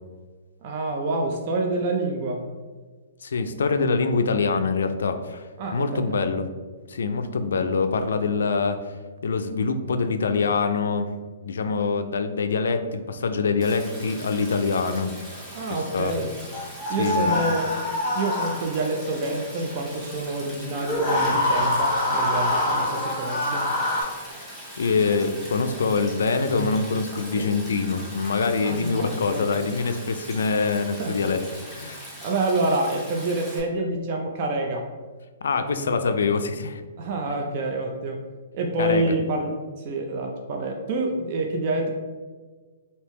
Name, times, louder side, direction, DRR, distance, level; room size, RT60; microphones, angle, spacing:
voice 1, 0.6-2.4 5.6-6.3 15.5-16.3 16.9-17.7 18.1-23.6 27.3-27.5 28.6-29.5 31.0-31.1 32.2-34.8 37.0-38.2 38.5-39.5 39.8-41.9, right 2 dB, 40° right, 1 dB, 0.4 m, -27 dB
voice 2, 3.2-6.5 6.9-8.9 9.2-11.1 11.4-15.1 15.9-16.2 17.0-17.3 24.8-31.4 31.8-32.0 35.4-36.8 37.3-37.4 38.8-39.1, left 4 dB, 85° left, 8 dB, 0.3 m, -24 dB
Stream, 13.6-33.6, equal, 5° right, 0.9 m, -41 dB
sound 1, 16.5-18.9 20.8-24.0, left 1 dB, 15° left, 1.1 m, -25 dB
3.3 x 2.7 x 3.1 m, 1.4 s
hypercardioid pair, 155°, 0 cm